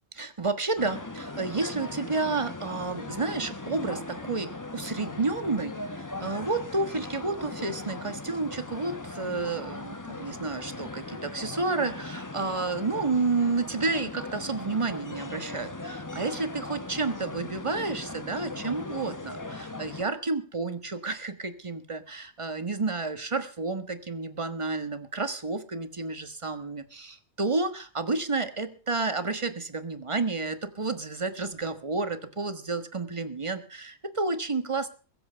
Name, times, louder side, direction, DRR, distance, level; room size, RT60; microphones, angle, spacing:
voice 1, 0.2-34.9, right 3 dB, 25° right, 10 dB, 1.4 m, -30 dB
sound 1, 0.8-20.0, left 2 dB, 15° left, 1.0 m, -39 dB
21.5 x 7.7 x 6.7 m, 0.40 s
omnidirectional pair, 1.2 m